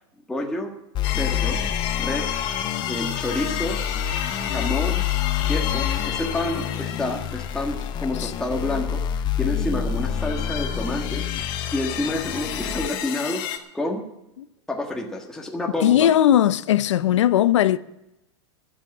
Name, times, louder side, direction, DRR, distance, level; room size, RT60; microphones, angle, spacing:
voice 1, 0.3-0.7 1.2-1.7 2.0-2.4 2.9-3.8 4.5-5.0 5.5-11.3 11.7-14.1 14.7-16.1, left 1 dB, 5° left, 1.6 m, -29 dB
sound 1, 0.9-12.9, left 9 dB, 30° left, 0.8 m, -28 dB
sound 2, 1.0-9.0 9.4-13.6, left 10 dB, 50° left, 1.8 m, -32 dB
voice 2, 15.8-17.8, left 11 dB, 80° left, 0.7 m, -18 dB
13.0 x 7.5 x 9.6 m
hypercardioid pair, 125°, 15 cm